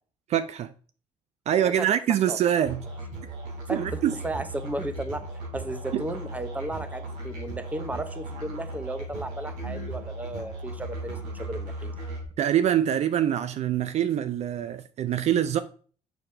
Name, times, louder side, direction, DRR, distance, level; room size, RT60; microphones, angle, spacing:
voice 1, 0.3-0.7 1.5-2.8 3.7-4.1 5.9-6.0 12.4-15.6, right 10 dB, 55° right, 0.4 m, -24 dB
Musical instrument, 2.7-12.3, right 2 dB, 85° right, 3.3 m, -37 dB
voice 2, 3.7-5.2 5.5-12.0, right 1 dB, 10° right, 0.8 m, -34 dB
6.9 x 6.1 x 3.3 m
cardioid pair, 100°, 13 cm